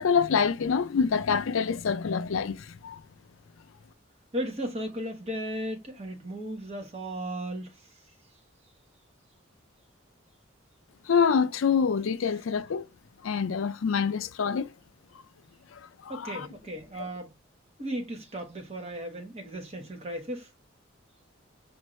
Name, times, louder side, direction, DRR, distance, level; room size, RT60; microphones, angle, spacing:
voice 1, 0.0-3.0 11.1-12.9 13.2-14.7 15.7-16.5, left 6 dB, 80° left, 0.5 m, -26 dB
voice 2, 4.3-7.7 16.1-17.3 17.8-20.5, right 1 dB, 30° right, 1.1 m, -35 dB
5.3 x 2.6 x 3.0 m
head